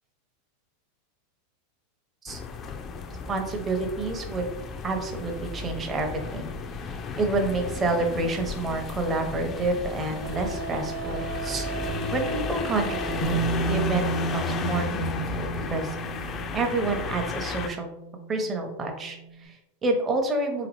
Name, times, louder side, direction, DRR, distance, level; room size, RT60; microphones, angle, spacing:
sound 1, 2.3-17.7, left 5 dB, 35° left, 0.4 m, -34 dB
voice 1, 3.3-4.4 4.8-6.5 6.8-11.7 12.1-13.4 13.7-16.0 16.5-17.9 18.3-20.7, right 3 dB, 25° right, 4 dB, 0.8 m, -29 dB
Wind instrument woodwind instrument, 8.9-9.0 10.2-14.3, right 3 dB, 85° right, 0.4 m, -35 dB
Bass guitar, 13.2-19.3, right 4 dB, 85° left, 0.9 m, -32 dB
3.5 x 2.9 x 3.0 m, 0.91 s
hypercardioid pair, 95°, 0 cm